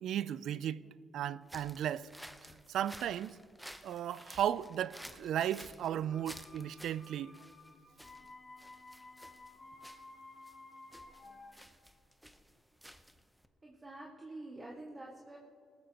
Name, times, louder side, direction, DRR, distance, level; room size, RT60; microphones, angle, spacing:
voice 1, 0.0-0.8 1.1-2.1 2.7-3.4 3.8-7.3, right 10 dB, 75° right, 0.4 m, -35 dB
sound 1, 1.4-13.5, equal, ahead, 0.8 m, -54 dB
sound 2, 6.0-11.5, left 3 dB, 25° left, 2.3 m, -54 dB
voice 2, 13.6-15.4, right 2 dB, 25° right, 1.7 m, -47 dB
19.0 x 14.0 x 3.0 m
cardioid pair, 90°, 0 cm